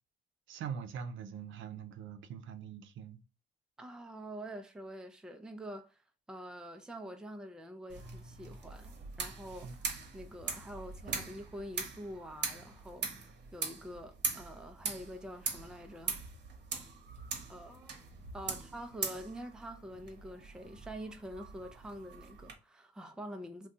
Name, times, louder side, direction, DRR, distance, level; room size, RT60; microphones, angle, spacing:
voice 1, 0.5-3.2 9.6-9.8 18.4-18.6, right 7 dB, 75° right, 0.5 m, -43 dB
voice 2, 3.8-6.0 6.3-16.2 17.5-18.0 18.3-23.7, equal, 5° right, 0.5 m, -46 dB
sound 1, 7.9-22.5, right 5 dB, 60° right, 0.9 m, -42 dB
2.7 x 2.3 x 3.7 m
cardioid pair, 90°, 20 cm